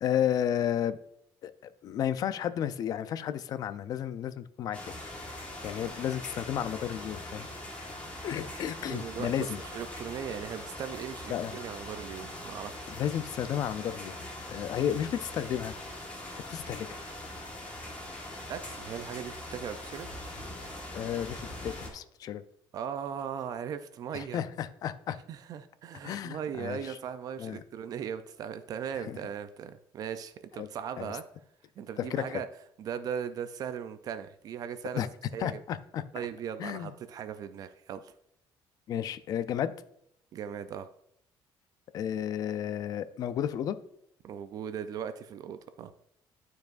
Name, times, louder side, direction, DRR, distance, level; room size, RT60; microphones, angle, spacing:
voice 1, 0.0-1.0 1.4-1.5 1.8-4.8 5.6-7.5 8.2-9.6 11.3-11.6 13.0-14.1 14.5-15.8 16.5-16.9 20.9-22.4 24.1-25.2 26.0-27.0 27.4-27.6 29.1-29.2 30.6-30.7 31.0-31.2 32.0-32.4 34.9-35.1 35.4-36.0 36.6-36.9 38.9-39.7 41.9-43.8, left 10 dB, 45° left, 13 dB, 0.4 m, -32 dB
sound 1, 4.7-21.9, left 1 dB, 15° left, 1.4 m, -42 dB
voice 2, 8.9-12.9 18.5-20.1 22.7-24.4 25.3-31.2 31.8-32.5 32.8-35.1 35.3-35.6 36.1-38.1 40.3-40.9 44.2-45.9, right 8 dB, 45° right, 11 dB, 0.4 m, -38 dB
12.0 x 4.7 x 2.5 m, 0.74 s
cardioid pair, 180°, 9 cm